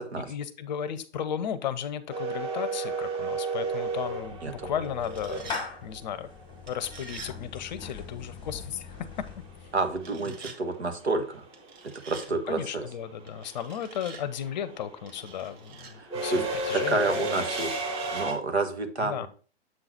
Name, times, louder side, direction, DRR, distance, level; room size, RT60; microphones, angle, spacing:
voice 1, 0.2-6.3 6.7-8.9 10.3-10.5 12.5-17.5 19.0-19.3, left 9 dB, 45° left, 15 dB, 0.7 m, -35 dB
sound 1, 2.1-6.2 8.6-8.7 10.0-10.3 10.5-18.3, right 2 dB, 20° right, 1.3 m, -33 dB
Clapping / Meow, 3.6-10.0, left 5 dB, 15° left, 1.1 m, -42 dB
sound 2, 4.8-5.7 6.7-7.3 10.0-10.6 11.5-12.3 13.3-14.2 15.1-15.9 16.8-17.7, right 6 dB, 45° right, 1.6 m, -47 dB
voice 2, 9.7-11.4 11.8-12.8 16.0-16.4 16.7-19.3, right 3 dB, 80° right, 6 dB, 1.4 m, -29 dB
7.7 x 3.9 x 4.4 m, 0.39 s
figure-of-eight pair, 120°, 32 cm